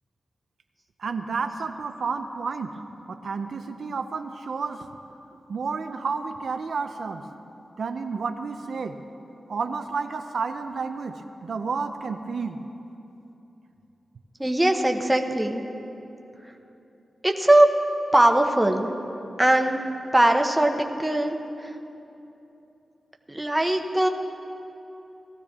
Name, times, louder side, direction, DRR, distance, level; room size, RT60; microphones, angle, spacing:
voice 1, 1.0-2.8 3.1-4.9 5.5-7.3 7.8-9.0 9.5-12.6, right 5 dB, 70° right, 7 dB, 0.5 m, -31 dB
voice 2, 14.4-15.6 17.2-17.7 18.1-18.9 19.4-19.8 20.1-21.8 23.3-24.1, right 1 dB, 10° right, 4 dB, 0.8 m, -20 dB
18.0 x 14.5 x 3.6 m, 3.0 s
wide cardioid pair, 120°, 0 cm